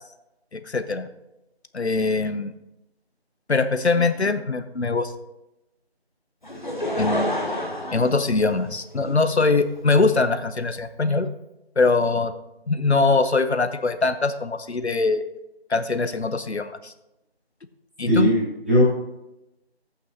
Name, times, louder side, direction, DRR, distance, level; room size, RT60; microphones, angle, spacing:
voice 1, 0.5-1.1 1.7-2.5 3.5-5.1 7.0-7.3 7.9-11.3 11.8-12.3 12.7-15.2 15.7-16.9 18.0-18.3, left 3 dB, 90° left, 11 dB, 0.8 m, -22 dB
Laughter / Crowd, 6.4-9.1 9.8-9.9, left 1 dB, 45° left, 1.3 m, -28 dB
voice 2, 18.0-18.8, equal, 10° right, -13 dB, 2.6 m, -19 dB
11.0 x 8.7 x 2.7 m, 0.91 s
figure-of-eight pair, 180°, 32 cm